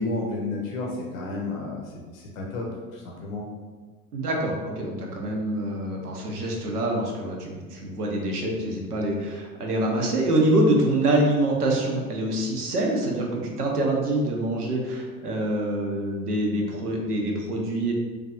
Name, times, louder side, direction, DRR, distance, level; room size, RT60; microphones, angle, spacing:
voice 1, 0.0-2.7 2.9-3.5, left 2 dB, 65° left, -1 dB, 0.7 m, -31 dB
voice 2, 4.1-17.9, right 1 dB, 80° right, 0 dB, 0.6 m, -25 dB
3.2 x 2.4 x 2.4 m, 1.4 s
figure-of-eight pair, 70°, 45 cm